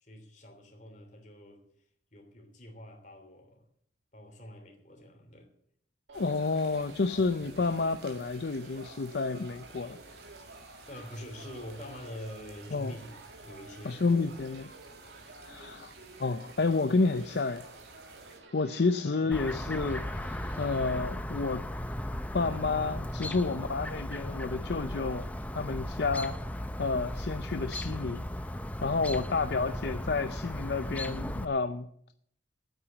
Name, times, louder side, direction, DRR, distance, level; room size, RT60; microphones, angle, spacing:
voice 1, 0.0-1.7 2.1-3.7 4.1-5.5 10.9-14.3 15.4-15.9, equal, 40° left, 3.1 m, -46 dB
voice 2, 6.1-10.0 12.7-12.9 13.8-14.7 15.5-15.9 16.2-17.6 18.5-21.6 22.3-25.3 25.5-26.4 26.8-28.2 28.8-32.1, left 3 dB, 65° left, 0.6 m, -30 dB
sound 1, 6.1-18.4, right 3 dB, 60° right, 2.8 m, -54 dB
sound 2, 6.1-20.7, right 2 dB, 85° right, 1.9 m, -52 dB
Chirp tweet, 19.3-31.4, left 1 dB, 10° left, 0.6 m, -36 dB
9.2 x 8.9 x 9.7 m
head